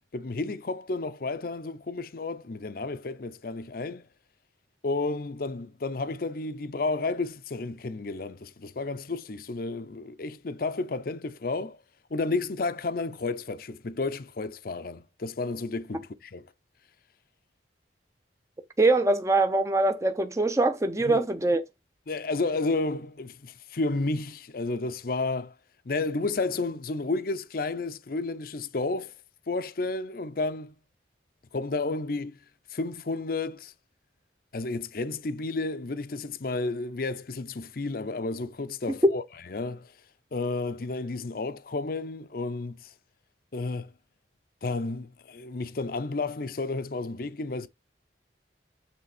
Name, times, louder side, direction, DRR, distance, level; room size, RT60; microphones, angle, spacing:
voice 1, 0.1-4.1 4.8-11.8 12.1-16.5 21.0-21.2 22.1-25.5 25.9-29.1 29.5-30.7 31.5-32.4 32.7-33.7 34.5-39.2 39.5-39.9 40.3-42.9 43.5-43.9 44.6-47.7, left 3 dB, 50° left, 0.6 m, -31 dB
voice 2, 18.8-21.6, right 2 dB, 15° right, 0.6 m, -23 dB
8.2 x 3.4 x 4.9 m
head